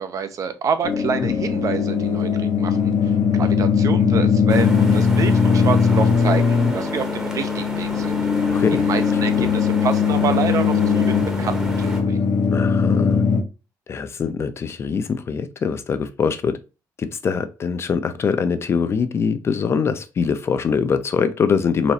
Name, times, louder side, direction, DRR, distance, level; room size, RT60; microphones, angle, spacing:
voice 1, 0.0-2.3 2.6-2.9 3.3-8.2 8.9-12.3, right 6 dB, 50° right, 9 dB, 0.6 m, -27 dB
sound 1, 0.8-13.4, left 6 dB, 70° left, 0.8 m, -19 dB
sound 2, 4.5-12.0, right 1 dB, 10° right, 0.9 m, -32 dB
voice 2, 8.5-8.9 9.1-9.5 12.5-13.2 13.9-16.6 17.0-21.9, left 6 dB, 35° left, 11 dB, 0.4 m, -23 dB
4.0 x 3.0 x 2.7 m, 0.30 s
cardioid pair, 150°, 7 cm